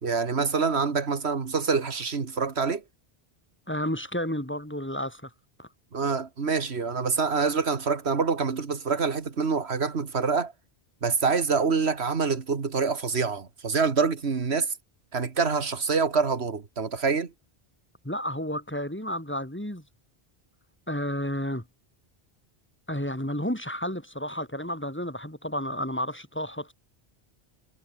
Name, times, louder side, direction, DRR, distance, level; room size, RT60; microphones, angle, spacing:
voice 1, 0.0-2.8 5.9-10.5 11.0-14.7 15.1-17.3, right 5 dB, 80° right, 2.0 m, -26 dB
voice 2, 3.7-5.3 5.6-5.7 18.0-19.8 20.9-21.6 22.9-26.7, equal, 10° left, 3.2 m, -31 dB
omnidirectional pair, 1.1 m